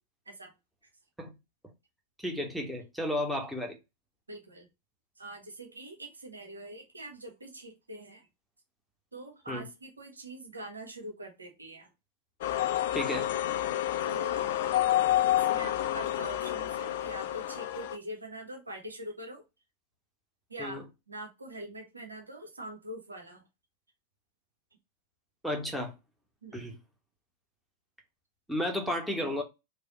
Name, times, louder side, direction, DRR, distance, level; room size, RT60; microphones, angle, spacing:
voice 1, 2.2-3.7 9.5-9.6 12.9-13.3 20.6-20.8 25.4-25.9 26.5-26.7 28.5-29.4, left 1 dB, ahead, 0.9 m, -32 dB
voice 2, 4.3-4.7 5.2-8.3 9.1-11.9 13.3-13.4 14.0-14.6 15.3-19.4 20.5-23.4 26.4-26.6, right 1 dB, 80° right, 1.0 m, -43 dB
sound 1, 12.4-18.0, left 12 dB, 55° left, 0.3 m, -29 dB
3.3 x 2.3 x 4.0 m
figure-of-eight pair, 90°, 0 cm